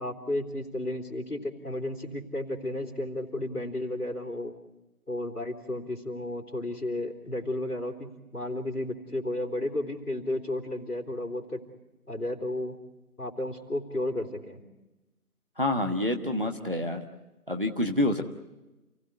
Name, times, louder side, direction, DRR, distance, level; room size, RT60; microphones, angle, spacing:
voice 1, 0.0-4.5 5.1-11.6 12.1-12.8 13.2-14.6, left 1 dB, 75° left, 6 dB, 3.6 m, -33 dB
voice 2, 15.6-17.0 17.5-18.2, left 1 dB, 35° right, 4 dB, 1.2 m, -27 dB
28.0 x 17.5 x 8.2 m, 1.0 s
figure-of-eight pair, 175°, 46 cm